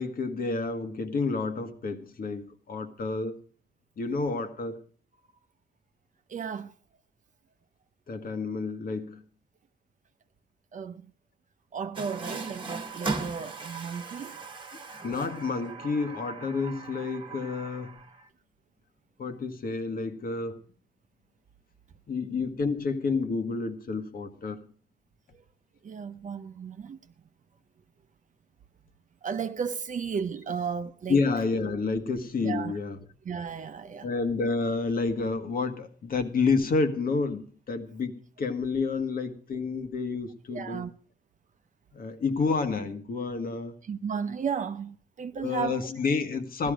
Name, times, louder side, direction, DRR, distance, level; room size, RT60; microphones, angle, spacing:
voice 1, 0.0-3.4 4.0-4.8 8.1-9.2 15.0-18.0 19.2-20.6 22.1-24.6 31.1-33.0 34.0-40.9 41.9-43.8 45.4-46.7, left 4 dB, 55° left, 1.5 m, -29 dB
voice 2, 6.3-6.7 10.7-11.1 11.7-14.4 25.8-27.0 29.2-31.2 32.4-32.7 33.2-34.1 40.5-40.9 43.8-45.9, right 6 dB, 45° right, 0.7 m, -34 dB
Water tap faucet, 12.0-18.3, right 4 dB, 30° right, 1.4 m, -38 dB
15.5 x 12.5 x 5.1 m
cardioid pair, 100°, 18 cm